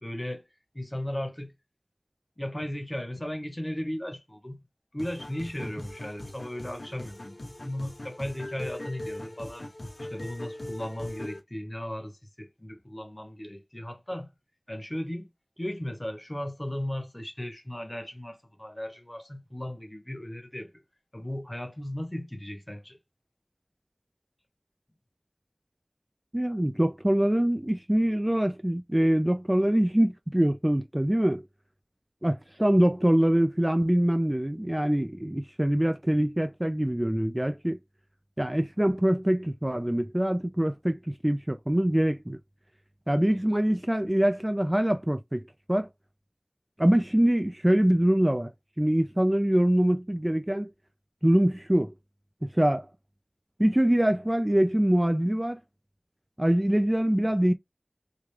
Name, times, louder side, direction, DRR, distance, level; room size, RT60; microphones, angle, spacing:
voice 1, 0.0-0.4 0.7-1.5 2.4-4.6 4.9-9.7 10.0-14.3 14.7-15.3 15.6-20.8 21.1-23.0, left 1 dB, 30° left, 0.9 m, -36 dB
sound 1, 5.0-11.4, left 1 dB, 75° left, 0.9 m, -40 dB
voice 2, 26.3-31.5 32.2-37.8 38.4-42.4 43.1-45.9 46.8-48.5 48.8-50.7 51.2-51.9 52.5-52.9 53.6-55.6 56.4-57.5, right 1 dB, 25° right, 0.4 m, -24 dB
3.2 x 2.4 x 3.1 m
wide cardioid pair, 40°, 0 cm